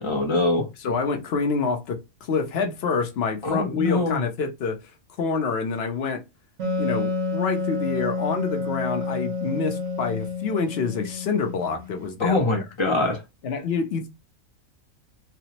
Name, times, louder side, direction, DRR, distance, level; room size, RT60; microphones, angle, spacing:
voice 1, 0.0-0.7 3.4-4.2 12.2-13.2, left 2 dB, 35° left, 0.4 m, -23 dB
voice 2, 0.8-4.8 5.2-6.2 6.8-12.6 13.4-14.1, left 5 dB, 55° left, 0.8 m, -27 dB
Wind instrument woodwind instrument, 6.6-12.0, left 3 dB, 85° right, 1.5 m, -29 dB
3.3 x 2.0 x 2.8 m
omnidirectional pair, 1.5 m